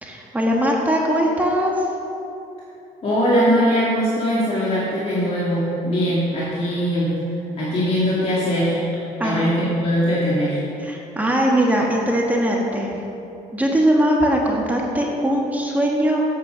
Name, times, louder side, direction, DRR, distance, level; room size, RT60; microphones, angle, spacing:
voice 1, 0.0-1.9 9.2-9.5 10.8-12.9 13.5-16.2, equal, 10° right, -2 dB, 1.3 m, -20 dB
voice 2, 3.0-7.1 7.6-8.8 9.2-10.6, equal, 40° left, -8 dB, 2.5 m, -21 dB
8.4 x 8.3 x 6.2 m, 2.8 s
cardioid pair, 110°, 17 cm